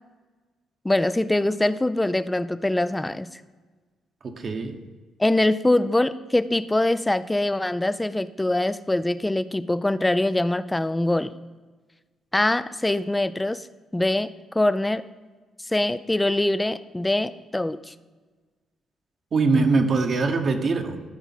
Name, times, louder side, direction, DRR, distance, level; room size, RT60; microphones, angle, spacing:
voice 1, 0.8-3.4 5.2-11.3 12.3-13.6 13.9-15.0 15.7-17.9, left 1 dB, 10° left, 15 dB, 0.4 m, -23 dB
voice 2, 4.2-4.8 19.3-21.1, right 3 dB, 50° right, 5 dB, 1.0 m, -22 dB
13.0 x 4.7 x 5.9 m, 1.4 s
cardioid pair, 90°, 0 cm